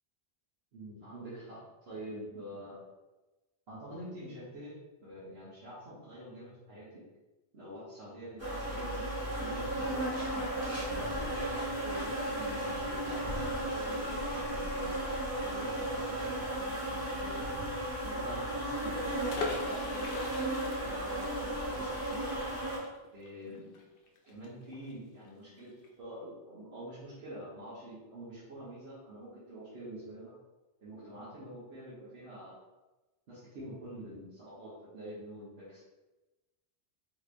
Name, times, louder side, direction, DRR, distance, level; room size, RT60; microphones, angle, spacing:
voice 1, 0.7-2.9 3.7-4.7 5.0-7.1 7.5-11.2 11.8-14.1 14.5-15.0 15.4-17.5 18.0-20.1 20.6-22.3 23.1-23.7 24.3-30.4 30.8-32.6 33.3-35.9, right 1 dB, 80° right, -9 dB, 1.2 m, -47 dB
sound 1, 8.4-22.8, right 1 dB, 15° right, 1.2 m, -34 dB
sound 2, 19.3-24.9 25.2-25.3 25.6-25.9, left 3 dB, 70° left, 0.7 m, -41 dB
3.7 x 3.0 x 2.5 m, 1.1 s
omnidirectional pair, 1.0 m